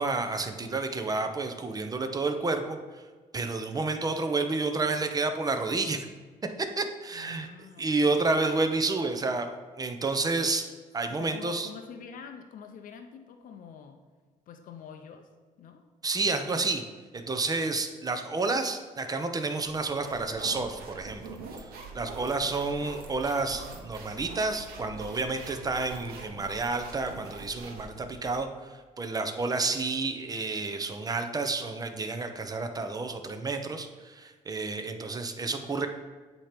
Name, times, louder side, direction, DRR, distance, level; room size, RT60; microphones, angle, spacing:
voice 1, 0.0-3.0 3.3-6.1 6.6-7.5 7.8-9.5 9.8-10.7 10.9-11.7 16.0-16.8 17.1-35.9, right 3 dB, 25° right, 6 dB, 0.7 m, -30 dB
voice 2, 7.1-8.3 11.1-14.0 14.5-15.3 15.6-15.8 22.0-22.8, left 7 dB, 60° left, 5 dB, 0.6 m, -47 dB
sound 1, 19.6-28.4, right 3 dB, 85° right, 0.9 m, -44 dB
8.4 x 3.0 x 5.1 m, 1.4 s
cardioid pair, 85°, 15 cm